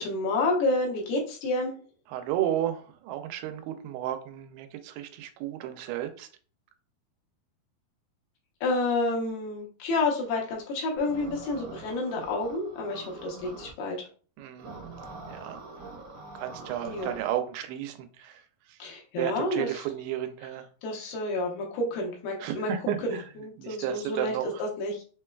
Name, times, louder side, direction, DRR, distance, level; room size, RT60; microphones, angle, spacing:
voice 1, 0.0-1.7 8.6-14.0 16.8-17.2 18.8-19.7 20.8-22.7 23.0-24.3 24.6-25.0, left 2 dB, 85° left, 3.0 m, -29 dB
voice 2, 2.1-6.3 14.4-14.7 15.3-15.6 16.3-18.4 18.7-18.8 19.2-20.7 22.4-23.3 23.6-24.6, right 11 dB, 90° right, 2.6 m, -33 dB
sound 1, 11.0-13.7 14.6-17.2, right 3 dB, 75° right, 1.5 m, -44 dB
6.4 x 2.3 x 2.2 m
omnidirectional pair, 4.5 m